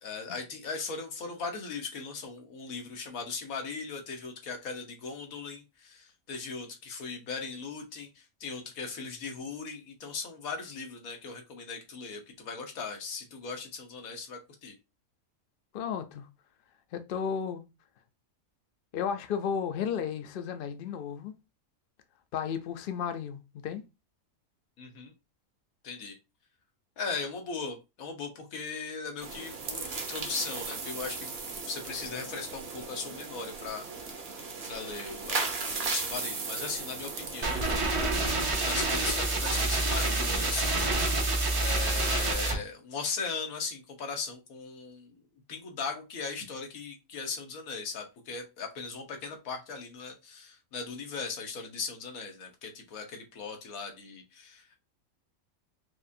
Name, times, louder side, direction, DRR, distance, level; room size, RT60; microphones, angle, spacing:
voice 1, 0.0-14.7 24.8-25.1 25.8-26.2 27.0-31.3 31.7-33.8 34.7-37.7 38.6-45.2 45.5-54.8, left 4 dB, 85° left, 1.4 m, -38 dB
voice 2, 15.7-16.3 16.9-17.6 18.9-21.3 22.3-23.8, left 7 dB, 65° left, 0.5 m, -33 dB
sound 1, 29.2-39.6, right 4 dB, 50° right, 1.0 m, -37 dB
sound 2, 37.4-42.5, right 2 dB, 30° right, 0.6 m, -27 dB
4.7 x 2.5 x 2.6 m
omnidirectional pair, 1.4 m